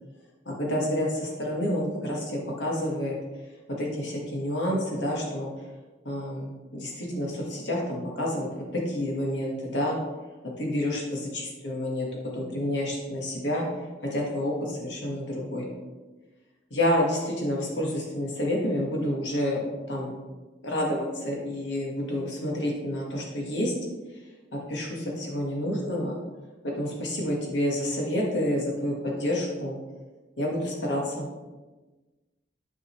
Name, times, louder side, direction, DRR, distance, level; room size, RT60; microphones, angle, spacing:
voice 1, 0.4-3.2 3.8-5.5 6.0-10.0 10.6-12.1 12.3-13.6 14.1-15.7 16.7-20.1 20.6-23.7 24.5-26.2 26.8-29.8 30.4-31.3, left 1 dB, 80° left, -2 dB, 1.6 m, -29 dB
9.7 x 5.2 x 3.1 m, 1.2 s
head